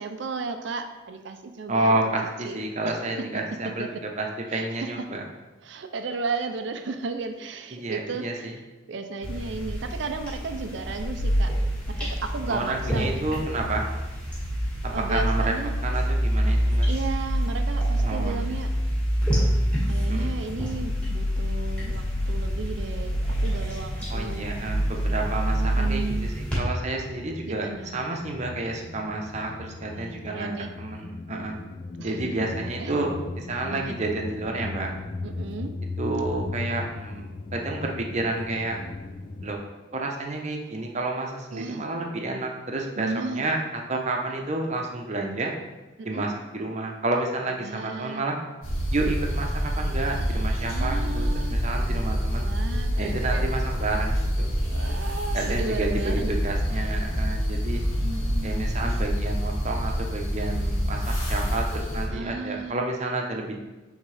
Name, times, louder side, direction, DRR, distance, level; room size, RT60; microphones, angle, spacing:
voice 1, 0.0-2.0 2.4-2.6 2.8-3.3 3.8-3.9 4.5-5.1 5.6-8.6 8.9-11.5 11.9-13.6 14.9-15.7 16.9-18.7 19.8-24.5 25.6-26.3 27.5-28.0 29.9-30.7 32.0-32.2 32.8-32.9 33.7-34.1 35.2-35.8 41.5-41.8 43.0-43.5 46.0-46.3 47.6-48.3 50.7-51.6 52.4-53.5 54.6-56.4 58.0-58.5 62.1-62.7, right 4 dB, 60° right, 7 dB, 0.4 m, -34 dB
voice 2, 1.7-5.2 7.7-8.5 12.5-13.9 14.8-15.5 15.8-16.9 18.0-18.5 20.1-20.3 24.1-30.5 30.8-31.5 32.0-34.9 36.0-38.8 39.4-39.6 39.9-45.5 46.0-48.4 48.9-49.5 49.8-52.5 53.0-54.5 55.3-57.8 58.4-63.6, right 2 dB, 35° right, 1 dB, 0.8 m, -30 dB
sound 1, 9.2-26.6, equal, 5° left, 1.9 m, -26 dB
sound 2, 21.0-21.5 21.8-39.5, left 3 dB, 40° left, 0.5 m, -39 dB
sound 3, 48.6-62.1, equal, 75° left, 1.8 m, -27 dB
9.0 x 3.6 x 3.3 m, 1.2 s
head